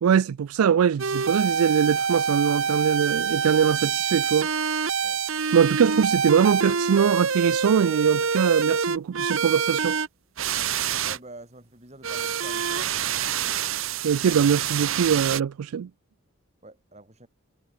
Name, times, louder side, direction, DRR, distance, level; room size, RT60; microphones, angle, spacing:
voice 1, 0.0-4.5 5.5-10.0 14.0-15.9, right 7 dB, 80° right, 0.4 m, -22 dB
sound 1, 1.0-10.1 10.4-11.2 12.0-15.4, right 6 dB, 65° right, 1.1 m, -26 dB
voice 2, 11.0-12.9 16.6-17.3, right 2 dB, 30° right, 7.5 m, -46 dB
head